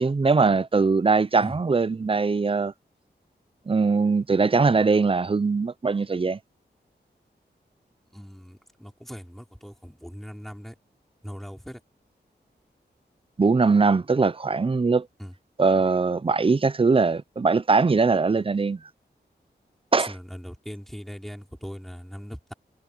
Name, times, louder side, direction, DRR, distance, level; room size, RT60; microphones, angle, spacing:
voice 1, 0.0-2.7 3.7-6.4 13.4-15.1 15.6-18.8 19.9-20.1, right 4 dB, 30° right, 0.5 m, -21 dB
voice 2, 8.1-10.7 11.2-11.8 15.2-15.3 20.0-22.5, equal, ahead, 4.8 m, -40 dB
wide cardioid pair, 85°, 18 cm